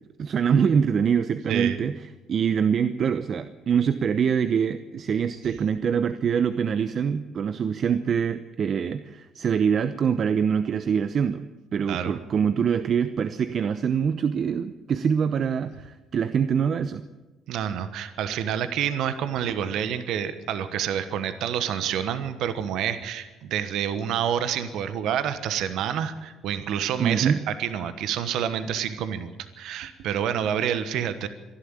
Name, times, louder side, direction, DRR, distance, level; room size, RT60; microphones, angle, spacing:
voice 1, 0.2-17.0 27.0-27.4, right 7 dB, 50° right, 12 dB, 0.8 m, -24 dB
voice 2, 17.5-31.3, right 9 dB, 70° right, 11 dB, 1.2 m, -28 dB
25.5 x 11.5 x 8.9 m, 1.2 s
hypercardioid pair, 60°, 0 cm